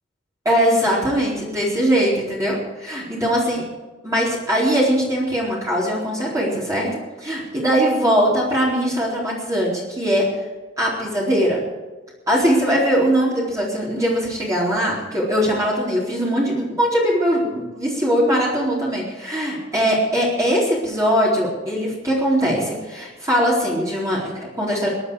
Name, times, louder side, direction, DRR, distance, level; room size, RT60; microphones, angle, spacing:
voice 1, 0.4-3.6 4.0-10.3 10.8-11.6 12.3-24.9, equal, 20° right, -6 dB, 4.2 m, -21 dB
22.0 x 11.0 x 4.9 m, 1.3 s
head